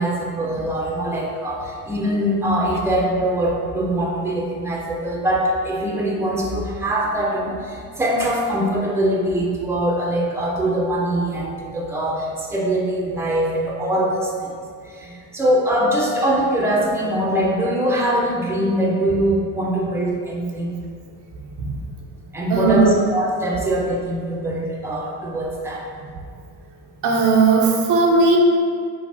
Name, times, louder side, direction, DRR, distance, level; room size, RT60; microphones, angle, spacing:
voice 1, 0.0-14.5 14.8-20.8 22.3-25.8, right 1 dB, 5° right, -3 dB, 0.8 m, -22 dB
voice 2, 22.5-23.0 27.0-28.4, right 4 dB, 65° right, -1 dB, 0.9 m, -16 dB
5.7 x 2.0 x 4.2 m, 2.2 s
supercardioid pair, 70°, 44 cm